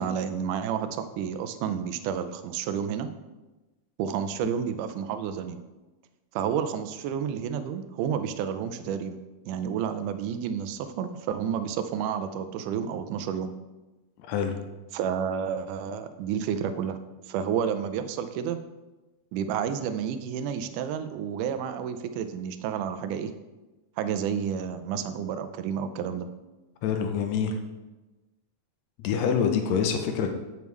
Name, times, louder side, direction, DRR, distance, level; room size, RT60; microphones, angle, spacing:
voice 1, 0.0-3.1 4.0-5.6 6.3-9.2 9.5-13.5 14.9-17.0 17.3-18.6 19.3-23.3 24.0-26.3, right 8 dB, 80° right, 9 dB, 2.0 m, -30 dB
voice 2, 14.2-14.6 26.8-27.6 29.0-30.3, left 7 dB, 85° left, 5 dB, 1.5 m, -26 dB
8.0 x 7.1 x 3.1 m, 1.1 s
omnidirectional pair, 3.8 m